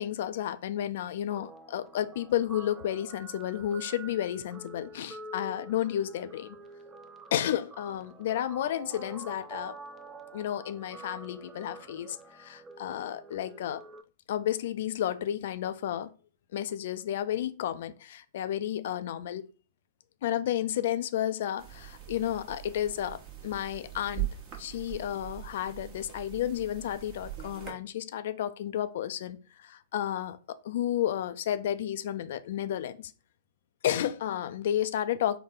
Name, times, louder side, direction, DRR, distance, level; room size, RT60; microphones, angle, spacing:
voice 1, 0.0-6.6 7.3-9.8 10.3-13.8 14.3-16.1 16.5-19.4 20.2-24.3 24.6-33.1 33.8-35.4, left 11 dB, 65° left, 0.3 m, -32 dB
Guitar, 1.3-14.0, right 3 dB, 15° right, 0.4 m, -47 dB
sound 1, 21.6-27.7, right 14 dB, 40° right, 1.0 m, -41 dB
3.8 x 2.1 x 3.7 m
hypercardioid pair, 115°, 0 cm